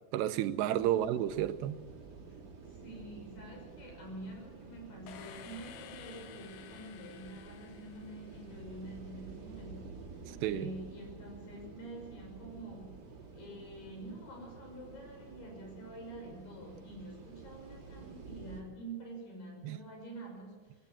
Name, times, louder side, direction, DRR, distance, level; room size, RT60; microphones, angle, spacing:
voice 1, 0.1-1.8 10.3-10.7 19.6-19.8, right 12 dB, 85° right, 11 dB, 3.0 m, -31 dB
sound 1, 0.7-18.6, right 4 dB, 40° right, 4.1 m, -51 dB
voice 2, 2.6-10.0 10.4-13.0 13.3-20.9, right 1 dB, 55° left, 1 dB, 7.7 m, -47 dB
sound 2, 5.1-8.9, left 9 dB, 75° left, 3.2 m, -52 dB
21.0 x 17.0 x 7.3 m, 1.2 s
omnidirectional pair, 4.8 m